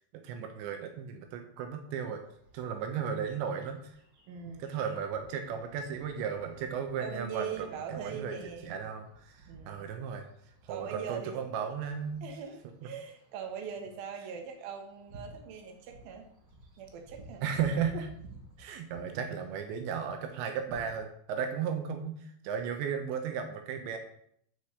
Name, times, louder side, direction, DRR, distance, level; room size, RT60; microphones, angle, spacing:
voice 1, 0.1-2.2 2.5-3.9 4.5-8.4 8.6-10.3 10.6-12.3 17.4-18.1 18.6-24.0, right 7 dB, 80° right, 5 dB, 3.2 m, -35 dB
sound 1, 2.2-20.8, right 2 dB, 45° right, 5.6 m, -56 dB
voice 2, 4.3-4.8 7.0-8.8 9.5-9.9 10.7-11.4 12.2-16.3 16.8-17.5, right 6 dB, 65° right, 3 dB, 3.0 m, -41 dB
9.2 x 6.0 x 8.1 m, 0.67 s
omnidirectional pair, 5.2 m